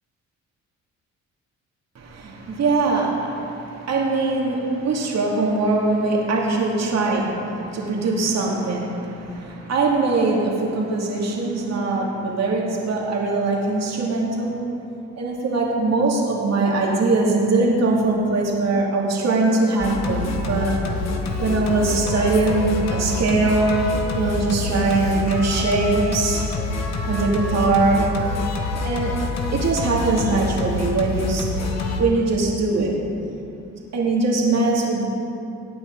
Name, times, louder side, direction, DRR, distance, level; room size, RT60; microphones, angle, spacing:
voice 1, 2.0-14.6 15.2-20.8 21.4-23.7 24.1-26.4 27.1-28.1 28.8-29.1 29.5-31.5 32.0-33.0 33.9-35.1, right 3 dB, 60° right, -2 dB, 2.3 m, -21 dB
Singing, 19.8-32.0, left 3 dB, 60° left, 1.4 m, -27 dB
17.5 x 8.8 x 3.7 m, 2.7 s
cardioid pair, 90°, 30 cm